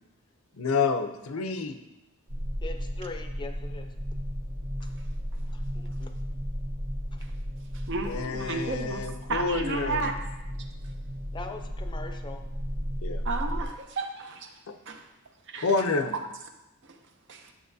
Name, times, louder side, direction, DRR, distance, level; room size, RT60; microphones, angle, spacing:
voice 1, 0.6-1.8 8.0-10.1 13.0-13.2 14.7-14.8 15.6-16.2, left 4 dB, 70° left, 8 dB, 0.6 m, -29 dB
sound 1, 2.3-13.6, equal, 75° right, 1.4 m, -34 dB
voice 2, 2.6-3.9 5.5-6.1 11.3-12.4, left 3 dB, 20° left, 6 dB, 0.5 m, -41 dB
voice 3, 7.7-9.0 9.3-10.1 13.2-14.5 14.9-15.0 15.5-15.7 16.9-17.0 17.3-17.5, right 3 dB, 60° right, 5 dB, 0.7 m, -32 dB
8.9 x 6.9 x 2.7 m, 0.94 s
head